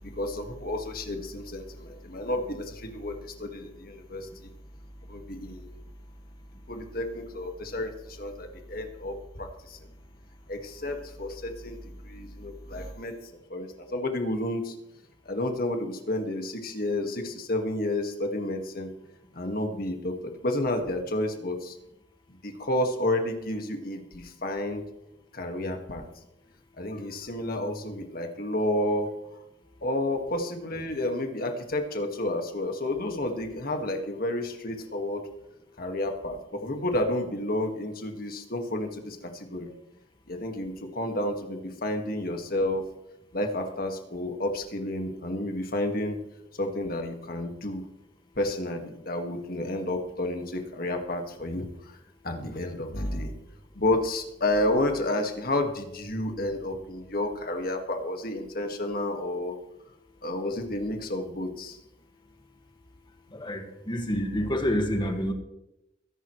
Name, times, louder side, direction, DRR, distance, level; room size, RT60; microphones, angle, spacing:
voice 1, 0.0-4.5 5.1-5.9 6.7-9.8 10.5-13.2 13.5-14.7 15.3-18.9 19.3-21.8 22.4-24.8 25.3-26.1 26.8-29.1 29.8-35.2 35.8-39.7 40.3-42.8 43.3-46.2 46.6-47.8 48.4-52.0 52.2-53.3 53.7-59.6 60.2-61.8, left 1 dB, 55° left, 4 dB, 1.9 m, -31 dB
voice 2, 63.3-65.3, equal, 25° left, 4 dB, 1.9 m, -28 dB
22.5 x 11.0 x 3.3 m, 0.88 s
head